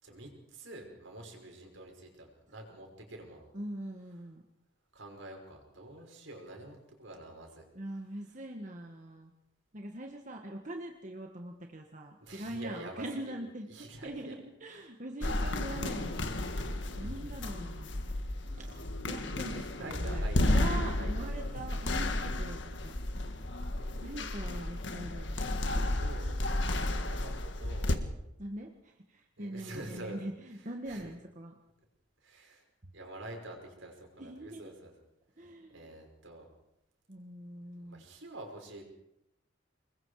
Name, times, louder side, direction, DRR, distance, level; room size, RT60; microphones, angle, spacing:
voice 1, 0.0-3.5 4.9-7.6 12.2-13.3 13.7-14.3 16.9-17.1 19.5-20.6 21.0-21.1 26.0-26.4 26.7-28.0 29.4-30.2 30.9-31.1 32.2-32.6 32.9-34.9 35.4-36.4 37.8-38.8, right 1 dB, 75° right, 2 dB, 5.8 m, -47 dB
voice 2, 3.5-4.4 7.7-9.3 9.7-13.7 14.0-16.2 16.9-17.9 18.5-23.0 24.0-25.6 28.4-31.6 32.8-32.9 34.2-34.7 35.4-36.0 37.1-38.1, right 1 dB, 40° right, 2 dB, 1.6 m, -42 dB
sound 1, 15.2-27.9, left 1 dB, 65° left, 1.7 m, -33 dB
26.0 x 21.5 x 4.9 m, 0.85 s
head